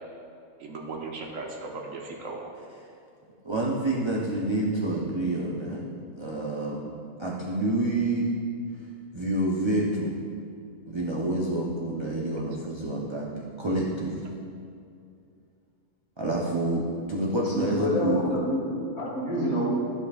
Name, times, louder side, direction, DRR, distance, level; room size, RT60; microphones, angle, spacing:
voice 1, 0.6-2.6 19.0-19.1, right 3 dB, 65° right, 0 dB, 1.2 m, -37 dB
voice 2, 3.4-5.8 6.1-6.9 7.2-8.4 9.1-10.2 10.9-13.3 13.6-14.2 16.2-18.2, right 2 dB, 30° right, -4 dB, 0.5 m, -28 dB
voice 3, 17.5-19.7, left 1 dB, 50° left, -5 dB, 2.2 m, -28 dB
13.5 x 5.3 x 2.4 m, 2.4 s
omnidirectional pair, 1.5 m